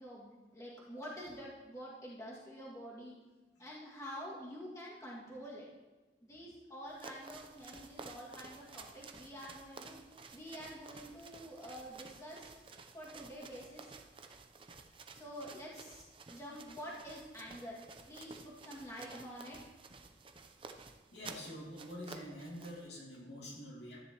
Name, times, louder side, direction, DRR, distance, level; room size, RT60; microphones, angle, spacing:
voice 1, 0.0-3.1 3.6-5.7 6.2-10.0 10.3-12.6 12.9-13.9 15.1-17.8 18.1-19.6, equal, 20° left, -6 dB, 2.1 m, -48 dB
sound 1, 6.9-22.9, right 4 dB, 30° right, 0.6 m, -53 dB
voice 2, 21.1-24.0, equal, 70° left, -4 dB, 2.6 m, -46 dB
13.0 x 10.0 x 3.0 m, 1.2 s
head